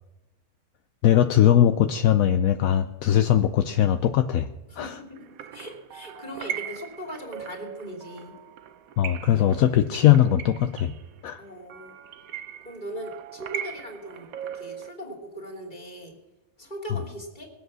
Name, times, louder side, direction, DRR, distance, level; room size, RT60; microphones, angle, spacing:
voice 1, 1.0-4.5 4.8-4.9 9.0-10.9 11.2-11.4, left 11 dB, 75° left, 7 dB, 1.1 m, -20 dB
voice 2, 4.7-5.3 5.5-8.3 11.4-11.9 12.6-16.1 16.6-17.5, right 1 dB, 30° left, -1 dB, 2.9 m, -39 dB
sound 1, 5.1-14.9, right 9 dB, 80° right, 1.2 m, -39 dB
21.0 x 8.0 x 6.2 m, 1.1 s
omnidirectional pair, 1.5 m